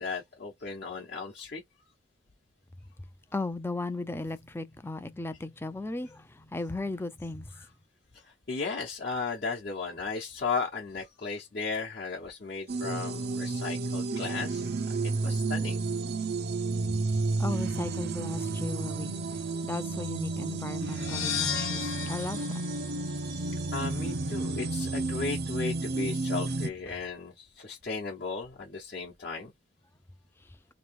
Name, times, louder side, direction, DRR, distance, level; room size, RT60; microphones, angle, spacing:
voice 1, 0.0-1.6 8.1-14.7 15.0-15.8 23.3-29.5, left 4 dB, 50° left, 0.9 m, -35 dB
voice 2, 3.0-7.7 16.8-23.6 30.4-30.6, left 2 dB, 10° left, 0.4 m, -37 dB
sound 1, 12.7-26.7, right 3 dB, 50° right, 0.5 m, -31 dB
sound 2, 20.8-23.7, left 8 dB, 80° left, 0.9 m, -35 dB
3.0 x 2.9 x 4.6 m
head